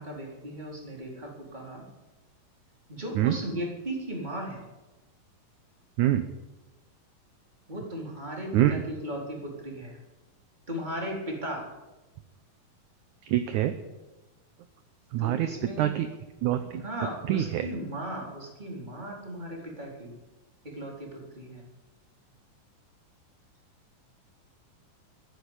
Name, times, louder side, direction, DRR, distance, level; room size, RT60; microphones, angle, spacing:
voice 1, 0.0-1.8 2.9-4.6 7.7-10.0 10.7-11.6 15.2-15.9 16.8-20.2 20.7-21.6, right 1 dB, 10° right, -1 dB, 4.0 m, -36 dB
voice 2, 13.2-13.7 15.1-15.5 15.8-16.1 16.4-16.8 17.3-17.7, right 13 dB, 75° right, 10 dB, 2.0 m, -25 dB
14.5 x 10.0 x 8.9 m, 1.1 s
omnidirectional pair, 4.0 m